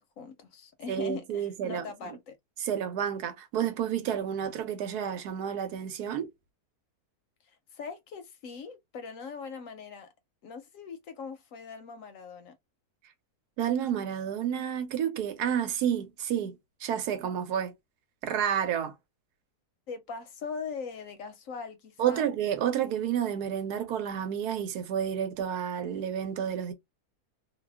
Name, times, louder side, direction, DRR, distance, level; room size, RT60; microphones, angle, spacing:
voice 1, 0.0-2.4 7.4-10.1 10.4-12.6 19.9-22.3, left 5 dB, 70° left, 0.8 m, -41 dB
voice 2, 0.9-1.8 2.6-6.3 13.6-17.7 18.2-18.9 22.0-26.7, right 9 dB, 75° right, 1.2 m, -30 dB
2.7 x 2.2 x 3.3 m
omnidirectional pair, 1.7 m